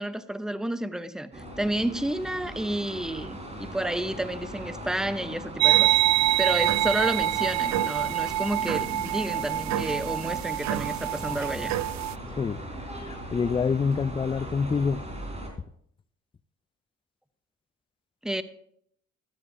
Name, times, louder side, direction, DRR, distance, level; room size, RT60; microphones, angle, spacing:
voice 1, 0.0-11.7 18.2-18.4, right 1 dB, ahead, 0.8 m, -31 dB
sound 1, 1.3-15.5, equal, 20° right, 4.5 m, -39 dB
sound 2, 5.6-12.1, right 13 dB, 65° right, 0.5 m, -25 dB
voice 2, 13.0-15.1, left 5 dB, 20° left, 0.4 m, -26 dB
15.0 x 12.5 x 2.6 m
cardioid pair, 90°, 30 cm